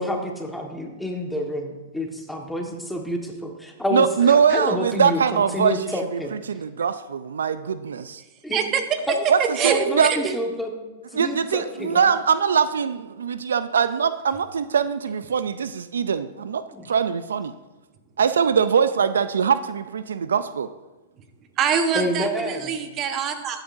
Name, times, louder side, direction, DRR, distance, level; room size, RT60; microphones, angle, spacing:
voice 1, 0.0-6.3 8.4-8.6 9.6-10.8 11.1-12.1 16.7-16.9 21.9-22.7, left 1 dB, 5° left, 2 dB, 1.5 m, -29 dB
voice 2, 3.9-5.8 6.5-8.2 9.3-9.4 9.6-10.1 11.1-17.5 18.2-20.7, right 7 dB, 80° right, 13 dB, 0.4 m, -22 dB
voice 3, 8.5-8.8 9.4-10.3 21.6-23.6, right 7 dB, 35° right, 7 dB, 1.1 m, -24 dB
13.5 x 9.0 x 2.6 m, 1.1 s
hypercardioid pair, 115°, 0 cm